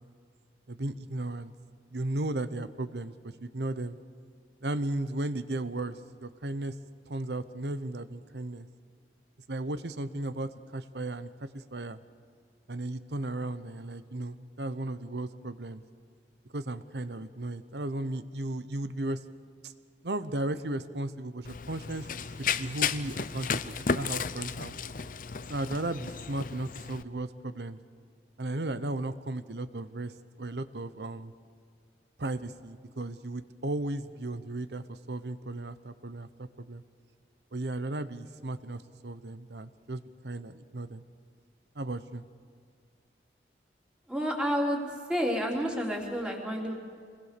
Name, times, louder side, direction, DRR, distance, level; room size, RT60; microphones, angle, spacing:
voice 1, 0.7-1.5 1.9-4.0 4.6-6.7 7.1-8.7 9.5-11.3 11.5-12.0 12.7-15.8 16.5-19.2 19.6-19.7 20.0-22.1 22.4-24.8 25.5-27.8 28.4-30.1 30.4-31.3 32.2-36.8 37.5-41.0 41.8-42.2, right 2 dB, 70° right, 13 dB, 1.0 m, -35 dB
Run, 21.4-27.0, left 6 dB, 50° left, 0.7 m, -34 dB
voice 2, 44.1-44.8 45.1-46.7, equal, 5° right, -1 dB, 3.4 m, -29 dB
26.5 x 20.5 x 6.8 m, 2.1 s
head